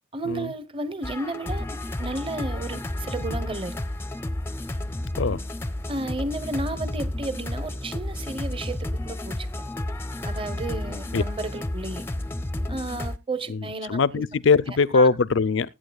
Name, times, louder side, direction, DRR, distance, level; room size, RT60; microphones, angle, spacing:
voice 1, 0.1-3.8 5.9-9.5 10.2-12.1 12.7-14.2 14.9-15.1, right 2 dB, 25° right, 0.9 m, -33 dB
sound 1, 1.0-13.2, left 1 dB, 10° left, 0.5 m, -31 dB
voice 2, 13.5-15.7, left 4 dB, 60° left, 0.5 m, -21 dB
20.0 x 9.0 x 2.3 m
head